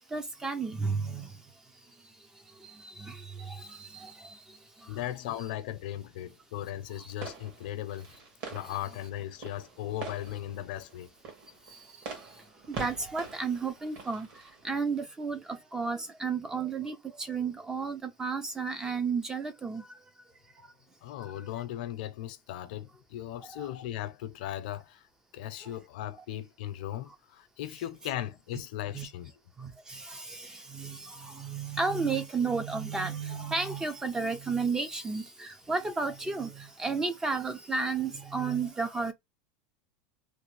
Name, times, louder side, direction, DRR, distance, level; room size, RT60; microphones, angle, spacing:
voice 1, 0.1-1.3 2.8-4.4 12.7-14.3 14.6-19.8 23.4-23.7 28.9-29.1 29.6-39.1, right 4 dB, 10° right, 0.4 m, -33 dB
voice 2, 4.9-8.1 8.5-11.1 21.0-25.0 25.3-29.3, left 12 dB, 75° left, 0.7 m, -37 dB
sound 1, 7.1-14.8, right 4 dB, 55° right, 1.7 m, -45 dB
3.2 x 2.5 x 3.2 m
supercardioid pair, 155°, 5 cm